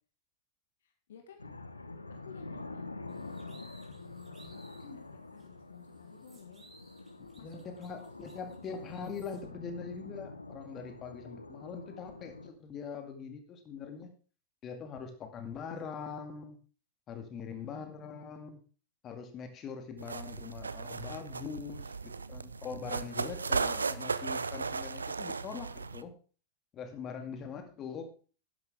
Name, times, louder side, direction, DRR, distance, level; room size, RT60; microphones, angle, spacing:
voice 1, 0.8-1.5 2.2-6.7 7.4-8.3 15.5-15.7 16.0-16.1 17.5-18.3 27.3-28.1, left 8 dB, 60° left, 5 dB, 1.7 m, -55 dB
sound 1, 1.4-12.5, left 3 dB, 80° left, 1.0 m, -47 dB
sound 2, 3.1-4.9 5.4-5.5 5.8-9.4, right 3 dB, 20° right, 4.1 m, -61 dB
voice 2, 7.2-14.1 14.6-16.6 17.1-18.6 19.0-26.1 26.7-28.1, left 6 dB, 30° left, 6 dB, 2.2 m, -42 dB
sound 3, 20.0-26.0, right 4 dB, 75° right, 0.5 m, -36 dB
12.5 x 10.5 x 3.6 m, 0.37 s
figure-of-eight pair, 90°, 0 cm